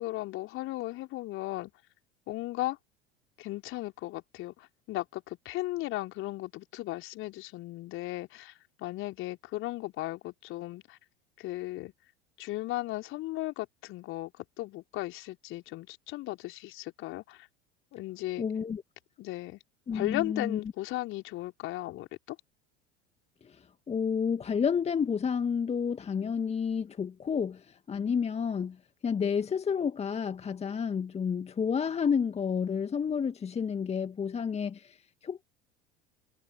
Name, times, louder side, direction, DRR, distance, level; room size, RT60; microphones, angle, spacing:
voice 1, 0.0-1.7 2.3-2.8 3.4-11.0 11.4-11.9 12.4-17.5 17.9-18.5 19.2-19.6 19.9-22.4, left 17 dB, 45° left, 4.5 m, -36 dB
voice 2, 18.4-18.8 19.9-20.6 23.4-28.8 29.0-35.4, left 6 dB, 20° left, 1.9 m, -30 dB
figure-of-eight pair, 75°, 30 cm